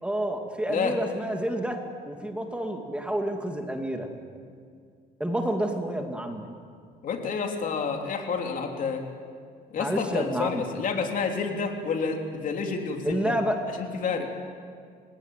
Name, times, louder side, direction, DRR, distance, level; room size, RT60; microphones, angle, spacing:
voice 1, 0.0-1.8 2.1-4.1 5.2-6.5 9.8-10.6 13.0-13.6 14.2-14.3, right 1 dB, 5° right, 3 dB, 2.5 m, -29 dB
voice 2, 7.0-9.0 9.7-13.3 13.8-14.3, left 5 dB, 50° left, 3 dB, 3.4 m, -29 dB
30.0 x 17.0 x 9.2 m, 2.2 s
cardioid pair, 110°, 17 cm